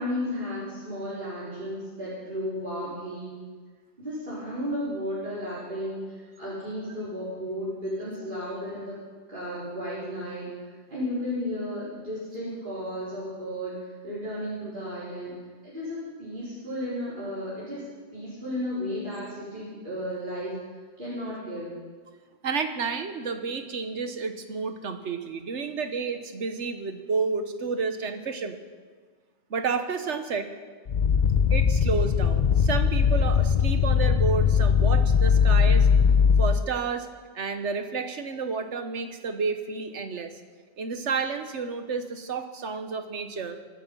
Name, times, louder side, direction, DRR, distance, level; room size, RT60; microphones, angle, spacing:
voice 1, 0.0-3.3 4.0-9.0 9.3-10.5 10.9-15.3 15.6-17.8 18.1-20.5 21.0-21.7, equal, 45° right, -11 dB, 4.8 m, -33 dB
voice 2, 22.4-28.6 29.5-30.5 31.5-35.9 36.4-37.1 37.3-40.3 40.8-43.6, right 5 dB, 85° right, 8 dB, 1.5 m, -30 dB
sound 1, 30.9-36.6, left 6 dB, 50° left, 0.7 m, -20 dB
25.0 x 10.0 x 5.5 m, 1.5 s
omnidirectional pair, 1.2 m